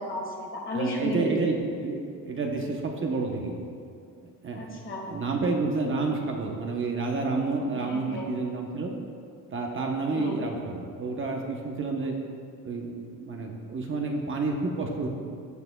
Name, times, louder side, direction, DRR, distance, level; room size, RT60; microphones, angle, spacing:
voice 1, 0.0-1.3 4.5-5.1 7.7-8.3 10.1-10.4, left 1 dB, 35° left, 0 dB, 1.4 m, -33 dB
voice 2, 0.7-3.6 4.4-4.7 5.1-8.9 9.5-12.1 12.6-15.1, right 3 dB, 35° right, 1 dB, 0.8 m, -29 dB
15.0 x 6.6 x 2.3 m, 2.3 s
cardioid pair, 130°, 34 cm